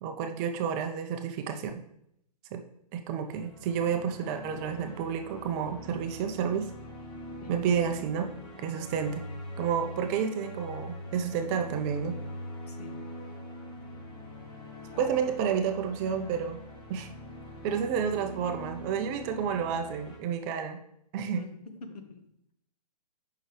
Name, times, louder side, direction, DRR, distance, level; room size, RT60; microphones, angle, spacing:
voice 1, 0.0-1.8 2.5-2.6 2.9-6.7 7.5-8.3 8.6-9.2 9.6-12.2 15.0-16.6 16.9-17.1 17.6-20.8 21.1-21.5, right 7 dB, 25° right, 5 dB, 0.5 m, -30 dB
sound 1, 3.2-20.2, equal, 25° left, 1.4 m, -43 dB
voice 2, 12.7-13.0 14.9-15.4 17.6-17.8 21.3-22.5, left 4 dB, 65° left, 5 dB, 1.3 m, -46 dB
7.7 x 5.6 x 3.2 m, 0.74 s
hypercardioid pair, 135°, 21 cm